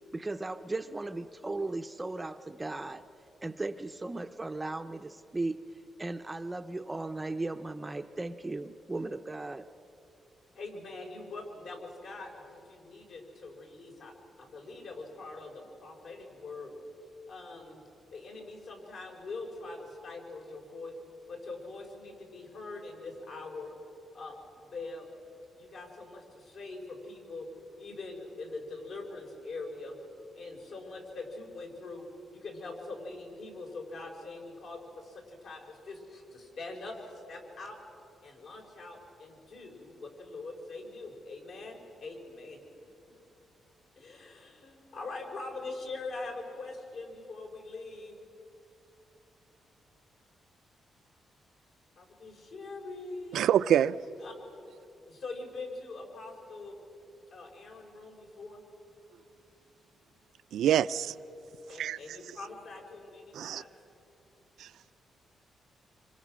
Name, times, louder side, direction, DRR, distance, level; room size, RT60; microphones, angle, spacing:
voice 1, 0.1-3.1 3.4-5.6 6.0-9.7, right 2 dB, 15° right, 0.5 m, -36 dB
voice 2, 10.5-16.7 17.3-17.8 18.1-20.9 21.3-23.8 24.1-24.4 24.7-25.1 25.5-27.5 27.8-30.0 30.3-32.1 32.3-37.8 38.2-42.6 44.0-48.2 52.0-53.4 54.2-54.3 55.1-56.8 57.3-58.6 61.7-63.8, left 3 dB, 65° left, 4.9 m, -43 dB
voice 3, 53.3-54.0 60.5-61.1 61.8-62.0 63.4-63.6, right 10 dB, 85° right, 0.4 m, -25 dB
26.0 x 25.5 x 6.2 m
cardioid pair, 140°, 0 cm